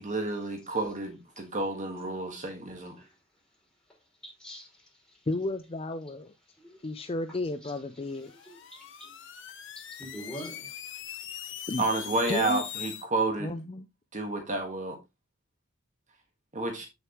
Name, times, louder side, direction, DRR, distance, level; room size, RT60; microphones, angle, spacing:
voice 1, 0.0-2.9 11.8-13.5 14.1-15.0 16.5-16.9, right 2 dB, 35° right, 1.6 m, -30 dB
voice 2, 4.2-5.2 6.6-6.9 7.3-9.4 9.8-10.7, equal, 5° left, 5.4 m, -46 dB
voice 3, 5.3-6.3 6.8-8.3 11.7-11.8 12.3-12.6 13.4-13.9, left 2 dB, 30° left, 0.5 m, -33 dB
sound 1, 8.2-13.0, left 10 dB, 65° left, 1.1 m, -41 dB
8.8 x 6.8 x 3.0 m
head